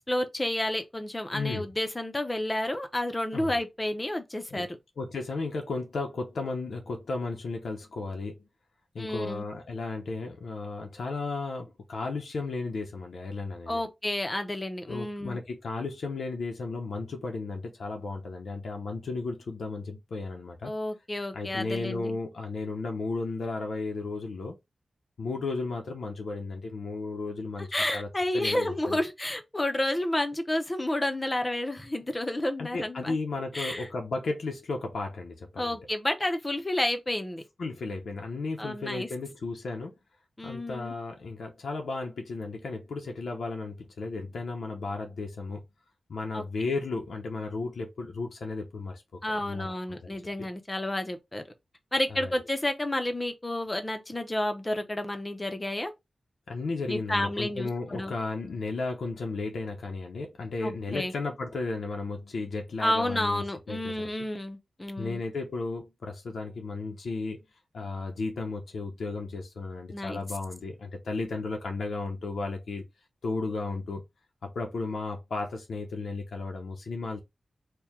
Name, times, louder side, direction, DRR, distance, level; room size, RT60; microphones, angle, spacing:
voice 1, 0.1-4.8 9.0-9.5 13.7-15.4 20.6-22.2 27.6-33.2 33.5-33.9 35.6-37.4 38.6-39.1 40.4-40.9 46.3-46.4 49.2-51.4 51.9-55.9 56.9-58.1 60.6-61.1 62.8-65.2 69.9-70.2, left 1 dB, 20° left, 0.7 m, -30 dB
voice 2, 1.3-1.7 3.3-3.6 4.5-4.6 5.0-8.4 8.9-13.8 14.9-20.7 21.3-24.6 25.2-27.7 27.9-28.1 28.3-29.0 32.6-35.8 37.6-39.9 40.4-45.6 46.1-49.0 49.4-50.2 52.1-52.3 56.5-63.9 65.0-67.4 67.7-72.9 73.2-74.0 74.4-77.2, left 3 dB, 90° left, 0.6 m, -34 dB
4.5 x 2.2 x 3.5 m
wide cardioid pair, 135°, 0 cm